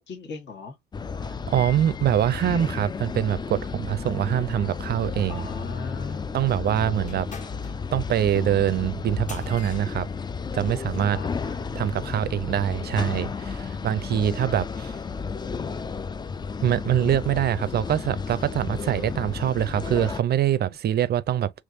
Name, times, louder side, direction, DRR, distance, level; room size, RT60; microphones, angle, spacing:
voice 1, 0.1-0.8 5.3-7.3 11.1-11.9 20.5-20.8, left 3 dB, 60° left, 1.4 m, -41 dB
sound 1, 0.9-20.2, left 5 dB, 20° left, 0.3 m, -32 dB
voice 2, 1.5-5.5 6.3-7.3 7.9-10.1 10.5-11.2 11.7-14.9 16.6-21.5, right 11 dB, 55° right, 0.5 m, -24 dB
sound 2, 7.0-11.2, left 4 dB, 40° left, 1.1 m, -47 dB
3.5 x 3.1 x 2.5 m
cardioid pair, 90°, 20 cm